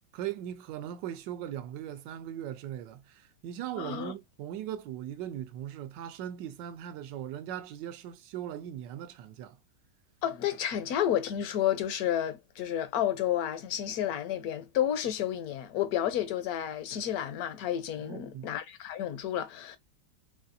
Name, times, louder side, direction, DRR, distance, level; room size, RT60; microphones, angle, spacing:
voice 1, 0.1-9.6 18.0-18.5, right 11 dB, 80° right, 1.2 m, -39 dB
voice 2, 3.8-4.1 10.2-19.8, left 11 dB, 70° left, 1.0 m, -31 dB
4.2 x 2.3 x 2.6 m
omnidirectional pair, 1.9 m